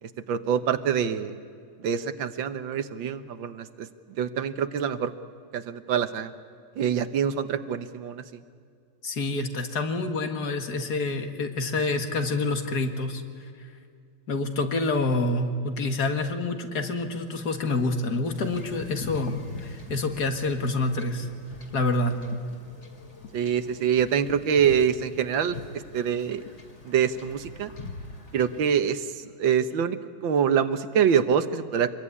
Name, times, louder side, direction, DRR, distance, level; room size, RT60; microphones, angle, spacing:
voice 1, 0.0-1.4 1.8-3.9 4.2-5.1 5.5-6.3 6.8-8.2 23.3-26.4 26.9-27.7 28.3-31.9, right 8 dB, 75° right, 11 dB, 1.8 m, -25 dB
voice 2, 9.0-13.2 14.3-21.3 21.7-22.2, left 2 dB, 55° left, 6 dB, 2.3 m, -27 dB
Wind / Ocean / Boat Water vehicle, 18.2-28.6, left 2 dB, 35° left, 2.8 m, -43 dB
26.5 x 21.5 x 9.8 m, 2.3 s
omnidirectional pair, 2.1 m